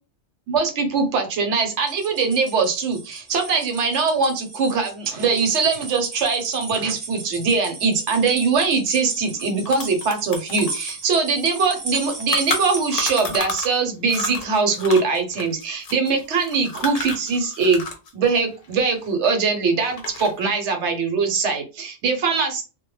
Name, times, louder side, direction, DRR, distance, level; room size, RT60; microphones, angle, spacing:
voice 1, 0.5-17.8 18.1-22.6, right 4 dB, 75° right, 5 dB, 1.0 m, -22 dB
sound 1, 1.7-13.4, right 3 dB, 40° right, 0.6 m, -36 dB
sound 2, 9.1-9.2 9.4-13.8 14.1-18.1 18.3-19.5 19.9-20.5, left 4 dB, 55° left, 0.4 m, -31 dB
2.1 x 2.1 x 3.0 m, 0.31 s
omnidirectional pair, 1.2 m